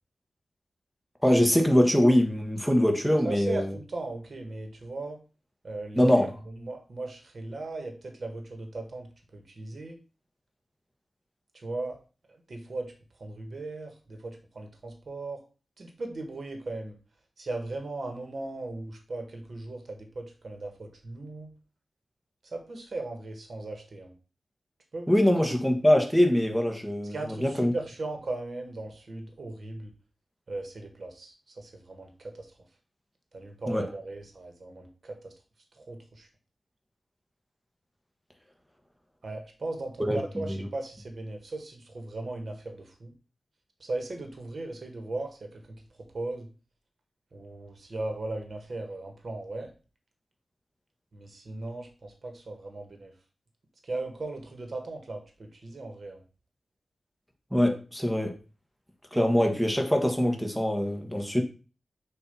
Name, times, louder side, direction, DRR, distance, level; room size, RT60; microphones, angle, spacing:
voice 1, 1.2-3.7 6.0-6.3 25.1-27.2 27.4-27.7 33.7-33.8 40.0-40.2 40.5-40.6 57.5-58.3 59.1-61.4, left 1 dB, ahead, 3 dB, 1.2 m, -23 dB
voice 2, 3.2-5.2 5.6-10.0 11.5-12.0 12.3-12.9 13.2-15.4 15.8-17.0 17.4-21.5 22.4-24.1 24.9-25.3 27.0-29.9 30.5-32.6 33.3-35.3 35.7-36.3 39.2-43.1 43.8-46.5 47.3-49.7 51.1-53.1 53.8-56.2, right 2 dB, 60° right, 4 dB, 1.4 m, -38 dB
6.7 x 2.8 x 5.4 m, 0.34 s
wide cardioid pair, 85°, 0 cm